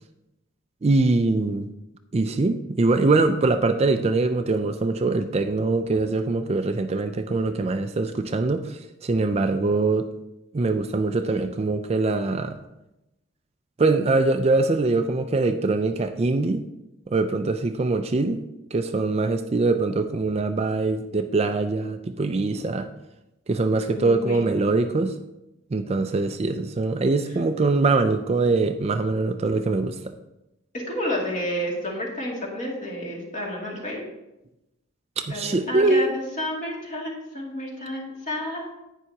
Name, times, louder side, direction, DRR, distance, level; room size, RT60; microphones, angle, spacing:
voice 1, 0.8-1.7 2.1-10.1 10.5-12.6 13.8-16.6 17.1-18.4 18.7-22.9 23.5-25.1 25.7-30.0 35.2-36.2, right 3 dB, 30° right, 8 dB, 0.4 m, -23 dB
voice 2, 23.8-24.4 30.7-34.0 35.3-38.8, left 1 dB, 40° left, -3 dB, 2.4 m, -30 dB
11.0 x 9.0 x 2.9 m, 0.93 s
head